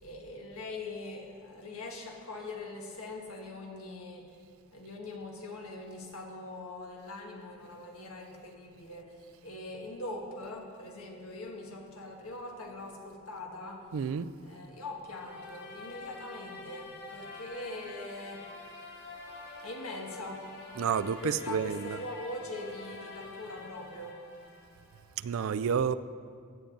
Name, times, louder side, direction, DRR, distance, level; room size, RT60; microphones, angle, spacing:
voice 1, 0.0-4.3 4.7-9.1 9.4-13.9 14.4-18.5 19.6-20.6 21.2-24.2, left 2 dB, 80° left, 1.6 m, -42 dB
voice 2, 13.9-14.3 20.8-22.0 25.2-25.9, right 7 dB, 65° right, 0.4 m, -30 dB
sound 1, 15.1-25.0, left 3 dB, 50° left, 1.7 m, -47 dB
16.0 x 8.6 x 3.9 m
head